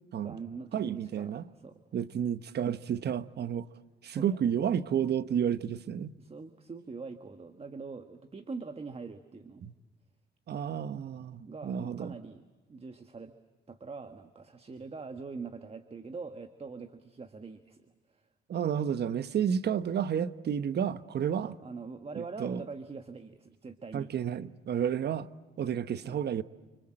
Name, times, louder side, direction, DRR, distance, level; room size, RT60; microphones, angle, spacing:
voice 1, 0.2-1.8 4.1-4.4 6.2-9.7 11.4-12.4 12.7-13.3 13.7-18.2 21.4-24.2 26.0-26.2, right 4 dB, 30° right, 1.5 m, -43 dB
voice 2, 0.7-1.5 1.9-3.7 4.0-6.1 9.6-9.7 10.5-12.1 18.5-21.5 22.4-22.6 23.9-25.3 25.6-26.4, right 8 dB, 55° right, 1.0 m, -31 dB
29.5 x 25.5 x 7.7 m
cardioid pair, 90°, 20 cm